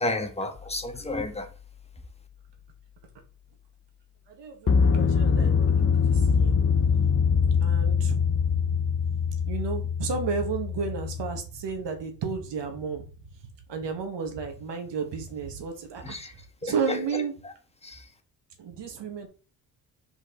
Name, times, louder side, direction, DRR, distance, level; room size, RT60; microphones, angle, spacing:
voice 1, 0.0-1.5 16.0-16.3 16.6-17.5 17.8-18.1, left 2 dB, 15° left, 1.5 m, -32 dB
sound 1, 0.6-0.8 4.7-11.4, left 6 dB, 30° left, 0.7 m, -23 dB
voice 2, 4.3-6.5 7.6-8.2 8.5-8.8 9.5-13.3 13.7-16.2 16.6-17.3 18.6-19.3, right 5 dB, 60° right, 1.9 m, -33 dB
5.0 x 4.9 x 4.0 m
supercardioid pair, 60°, 47 cm